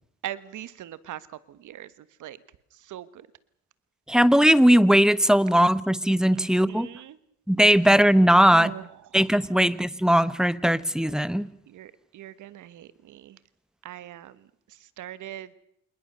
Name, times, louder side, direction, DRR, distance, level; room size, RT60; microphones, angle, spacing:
voice 1, 0.2-1.9 2.2-2.4 2.7-3.3 6.4-7.2 8.5-8.9 9.5-9.6 11.7-13.4 13.8-15.5, right 12 dB, 80° right, 16 dB, 1.5 m, -41 dB
voice 2, 4.1-6.9 7.5-8.7 9.1-11.5, equal, ahead, 17 dB, 1.0 m, -19 dB
27.0 x 20.5 x 6.8 m, 0.70 s
cardioid pair, 90°, 30 cm